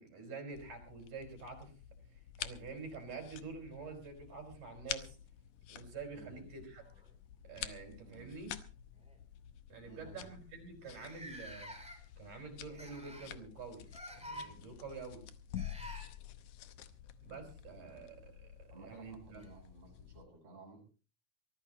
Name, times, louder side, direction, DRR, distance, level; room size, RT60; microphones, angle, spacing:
voice 1, 0.0-1.7 2.4-5.2 5.7-6.8 7.4-8.5 9.7-11.7 12.2-13.8 14.1-15.2 17.2-18.5 18.8-19.4, right 4 dB, 70° right, 3 dB, 6.7 m, -47 dB
sound 1, 0.5-20.2, left 11 dB, 75° left, 2.3 m, -49 dB
voice 2, 6.1-6.5 7.9-8.4 9.9-10.4 17.8-18.3 18.7-20.8, right 3 dB, 50° right, -4 dB, 8.5 m, -56 dB
sound 2, 6.2-7.4 8.4-8.6 9.0-9.2 9.9-10.0 10.2-10.3 10.9-12.2 12.8-13.4 13.9-14.5 15.6-16.1 18.2-18.3 19.4-19.5, equal, ahead, 3.3 m, -49 dB
24.0 x 15.0 x 3.0 m, 0.36 s
omnidirectional pair, 3.7 m